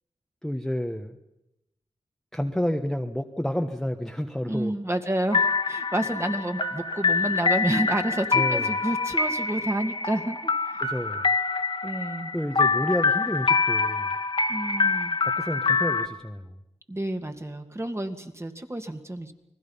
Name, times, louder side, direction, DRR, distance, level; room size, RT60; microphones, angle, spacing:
voice 1, 0.4-1.1 2.3-4.7 8.3-8.7 10.8-11.2 12.3-14.1 15.2-16.6, equal, 5° left, 5 dB, 1.3 m, -30 dB
voice 2, 4.4-10.8 11.8-12.3 14.5-15.2 16.9-19.3, right 1 dB, 20° right, 6 dB, 2.2 m, -30 dB
sound 1, 5.3-16.1, left 4 dB, 45° left, 1.8 m, -25 dB
29.5 x 20.0 x 5.6 m, 0.88 s
wide cardioid pair, 65°, 12 cm